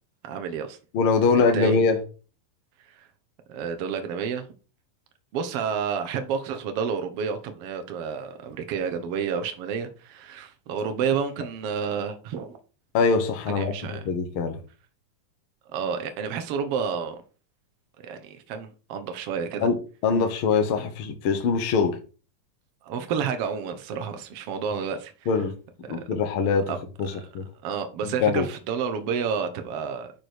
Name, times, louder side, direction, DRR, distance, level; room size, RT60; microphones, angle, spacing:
voice 1, 0.2-0.8 1.3-1.8 2.9-3.1 3.5-4.5 5.3-12.6 13.5-14.1 15.7-17.2 18.0-19.7 22.8-25.3 25.9-26.0 26.7-26.8 27.1-27.2 27.6-30.1, right 6 dB, 70° right, 1.4 m, -30 dB
voice 2, 0.9-2.0 12.9-14.6 19.6-19.8 20.0-22.0 25.3-25.5 25.9-26.7 27.0-27.4 28.2-28.5, left 5 dB, 65° left, 1.4 m, -23 dB
10.5 x 4.9 x 4.6 m
omnidirectional pair, 3.9 m